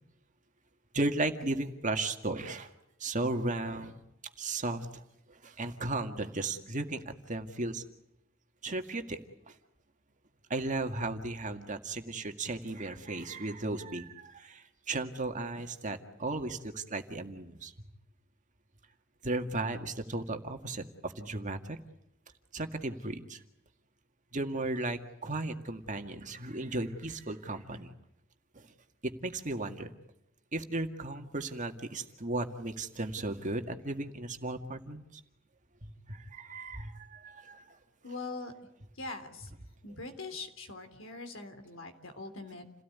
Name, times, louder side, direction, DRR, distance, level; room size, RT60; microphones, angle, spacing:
voice 1, 0.9-2.7 3.0-3.9 4.4-5.0 5.3-7.8 8.6-9.2 9.5-9.6 10.5-17.7 19.2-21.8 22.5-23.4 24.3-27.9 28.5-28.7 29.0-29.9 30.5-35.2 35.8-37.8, right 2 dB, 40° right, 6 dB, 2.0 m, -35 dB
voice 2, 38.0-38.5 38.9-39.5 39.8-42.7, left 3 dB, 75° left, 7 dB, 3.5 m, -42 dB
29.5 x 17.5 x 9.6 m, 0.81 s
head